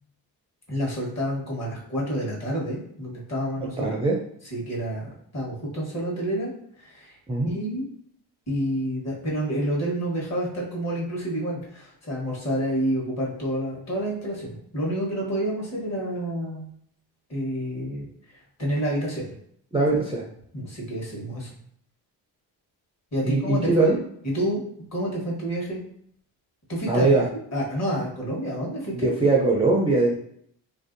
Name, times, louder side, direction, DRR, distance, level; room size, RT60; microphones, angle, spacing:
voice 1, 0.7-3.9 4.5-6.5 6.8-7.1 7.4-7.8 8.5-16.7 17.3-19.3 20.5-21.5 23.1-24.0 24.2-24.6 24.9-25.8 26.7-27.1 27.5-29.1, equal, 35° left, -4 dB, 1.2 m, -29 dB
voice 2, 3.8-4.2 7.3-7.6 19.7-20.2 23.2-24.0 26.9-27.3 28.9-30.1, right 2 dB, 15° right, -3 dB, 0.4 m, -21 dB
2.6 x 2.1 x 2.5 m, 0.67 s
cardioid pair, 75°, 43 cm